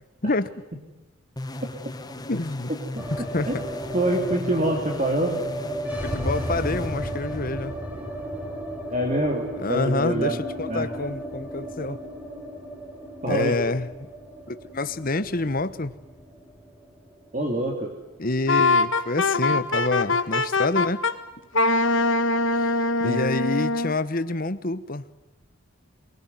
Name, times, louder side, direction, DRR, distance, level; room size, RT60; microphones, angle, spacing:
sound 1, 1.4-7.8, left 1 dB, 20° left, 1.2 m, -37 dB
voice 1, 2.3-2.7 3.1-3.6 6.0-7.8 9.6-12.0 13.3-13.9 14.5-15.9 18.2-21.1 22.6-22.7 23.0-25.0, left 2 dB, 40° left, 1.1 m, -27 dB
voice 2, 2.9-3.6 3.9-5.4 8.9-10.4 10.7-10.9 13.2-13.5 17.3-17.9 23.0-23.2, right 1 dB, 35° right, 2.9 m, -25 dB
sound 2, 3.0-19.1 19.3-19.4 19.7-20.4, equal, 10° right, 3.6 m, -35 dB
Wind instrument woodwind instrument, 18.5-21.1 21.5-23.9, left 3 dB, 60° left, 1.6 m, -22 dB
24.0 x 23.5 x 9.5 m
head